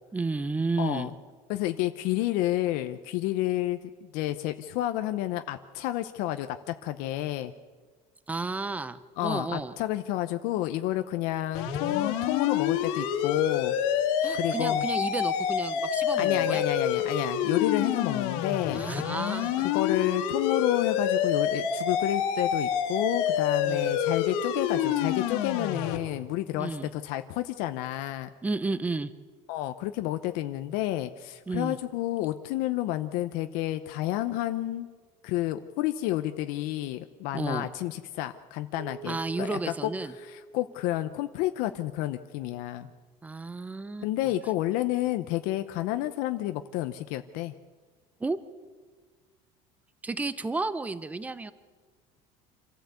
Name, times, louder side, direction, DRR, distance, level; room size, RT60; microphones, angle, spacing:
voice 1, 0.1-1.1 8.3-9.7 14.2-16.6 18.7-19.7 23.6-23.9 26.6-26.9 28.4-29.1 31.5-31.8 37.3-37.7 39.0-40.1 43.2-44.1 48.2-48.4 50.0-51.5, right 3 dB, 10° right, 14 dB, 0.7 m, -32 dB
voice 2, 0.8-1.1 1.5-3.8 4.1-7.5 9.2-13.8 14.3-14.9 16.2-18.8 19.7-28.3 29.5-34.9 35.2-39.9 40.2-42.9 44.0-47.5, left 14 dB, 70° left, 9 dB, 0.8 m, -30 dB
sound 1, 11.5-26.0, left 8 dB, 85° left, 2.3 m, -27 dB
Keyboard (musical), 38.8-41.7, right 3 dB, 60° right, 2.3 m, -46 dB
26.5 x 14.0 x 8.2 m, 1.5 s
cardioid pair, 165°, 15 cm